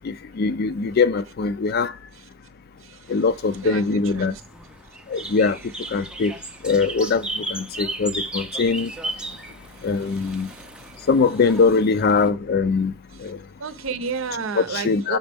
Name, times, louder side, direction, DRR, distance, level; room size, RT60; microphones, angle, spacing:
voice 1, 0.0-1.9 3.1-4.3 5.1-5.6 5.9-6.3 6.6-8.9 9.8-10.5 11.1-12.9 13.2-13.4 14.8-15.2, left 4 dB, 50° left, 0.4 m, -21 dB
voice 2, 2.8-3.2 3.6-4.4 5.1-5.4 6.0-6.1 9.7-10.9 13.1-13.3 13.6-15.2, right 4 dB, 85° right, 0.6 m, -33 dB
sound 1, 3.1-12.3, right 2 dB, 5° right, 0.5 m, -35 dB
6.0 x 5.2 x 3.4 m
head